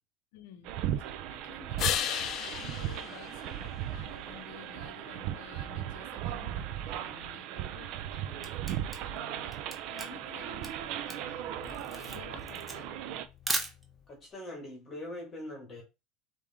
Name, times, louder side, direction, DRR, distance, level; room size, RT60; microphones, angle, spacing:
voice 1, 0.3-0.7 1.0-9.5 9.9-13.0, left 8 dB, 80° left, 0.8 m, -52 dB
sound 1, 0.6-13.3, right 11 dB, 60° right, 0.5 m, -37 dB
sound 2, 1.8-4.3 10.1-14.1, left 10 dB, 45° left, 0.4 m, -38 dB
Camera, 8.0-14.2, right 1 dB, 5° right, 0.8 m, -38 dB
voice 2, 14.1-15.8, left 1 dB, 30° left, 1.7 m, -42 dB
5.0 x 2.8 x 3.5 m
supercardioid pair, 140°, 0 cm